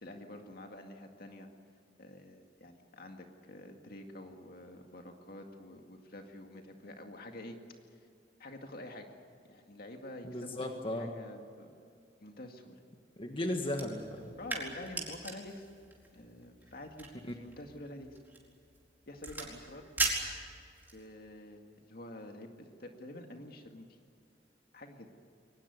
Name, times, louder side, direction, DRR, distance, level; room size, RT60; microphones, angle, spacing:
voice 1, 0.0-1.5 2.0-7.6 7.9-8.0 8.4-9.1 9.5-11.7 12.2-12.8 14.4-15.7 16.1-17.1 17.4-18.1 19.1-19.9 20.9-23.9 24.7-25.1, left 1 dB, 60° left, 4 dB, 2.1 m, -48 dB
voice 2, 10.2-11.1 13.2-14.4, left 1 dB, 30° left, 3 dB, 1.7 m, -36 dB
sound 1, 13.7-21.1, right 3 dB, 10° right, 4.5 m, -40 dB
23.0 x 19.0 x 9.4 m, 2.4 s
head